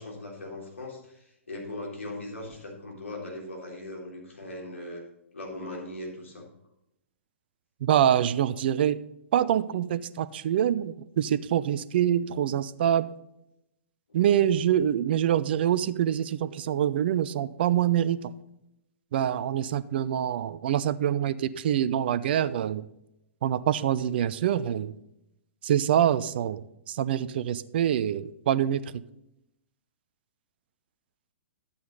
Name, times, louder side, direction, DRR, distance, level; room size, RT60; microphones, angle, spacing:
voice 1, 0.0-5.0 5.3-6.5, left 1 dB, 70° left, -1 dB, 3.7 m, -39 dB
voice 2, 7.8-9.0 9.3-13.1 14.1-18.2 19.1-22.8 23.4-24.9 25.6-26.6 26.9-28.8, right 10 dB, 50° right, 16 dB, 0.5 m, -25 dB
11.5 x 8.5 x 3.9 m, 0.84 s
figure-of-eight pair, 115°, 7 cm